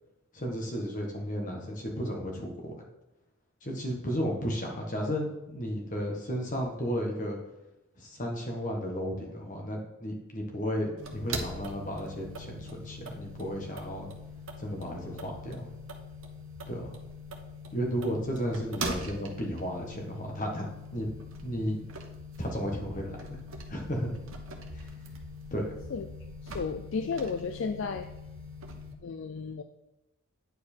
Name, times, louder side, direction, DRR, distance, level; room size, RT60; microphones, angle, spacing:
voice 1, 0.3-2.7 3.6-7.4 8.0-14.1 14.6-15.7 16.7-16.9 17.7-21.1 21.4-21.8 22.4-23.4 23.7-24.1 24.7-24.9 25.5-25.7, equal, 35° left, 0 dB, 1.4 m, -33 dB
sound 1, 11.0-28.9, equal, 70° right, 1.0 m, -42 dB
voice 2, 26.4-28.1 29.0-29.6, left 5 dB, 60° left, 8 dB, 0.4 m, -33 dB
9.5 x 4.7 x 4.4 m, 0.95 s
head